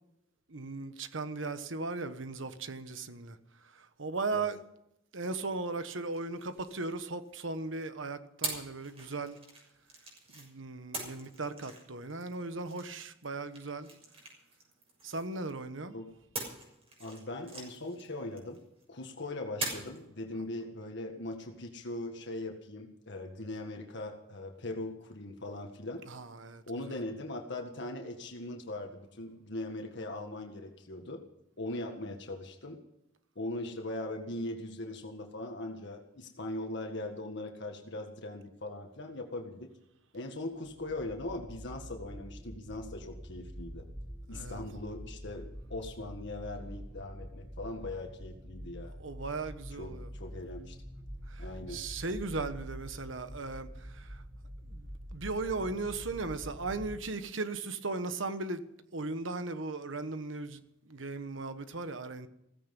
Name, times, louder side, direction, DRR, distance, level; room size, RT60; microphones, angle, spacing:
voice 1, 0.5-3.4 3.6-4.6 5.1-9.4 10.3-13.9 15.0-15.9 26.1-27.0 44.3-44.6 49.0-50.1 51.3-54.2 54.7-58.6 58.9-62.3, right 3 dB, 75° right, 1.3 m, -37 dB
sound 1, 6.1-7.6 8.4-10.5 10.9-15.6 16.3-18.8 19.6-20.0, right 3 dB, 30° right, 6.7 m, -43 dB
voice 2, 17.0-18.6 18.9-26.0 26.7-31.2 31.6-32.8 33.4-39.7 40.1-43.9 44.3-48.9 49.8-50.8 51.4-51.8, left 2 dB, 65° left, 1.8 m, -40 dB
sound 2, 40.6-57.0, equal, 15° right, 2.4 m, -46 dB
16.5 x 15.5 x 5.4 m
head